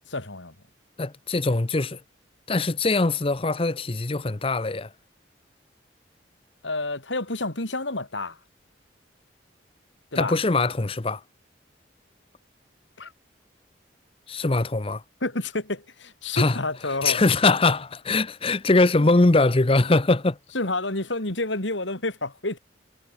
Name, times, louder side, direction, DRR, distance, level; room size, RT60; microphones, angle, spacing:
voice 1, 0.1-0.5 6.6-8.4 10.1-10.4 13.0-13.1 15.2-17.2 20.5-22.6, left 2 dB, 75° left, 4.4 m, -29 dB
voice 2, 1.0-2.0 2.5-4.9 10.2-11.2 14.3-15.0 16.4-16.6 17.0-20.4, left 3 dB, 30° left, 0.7 m, -22 dB
head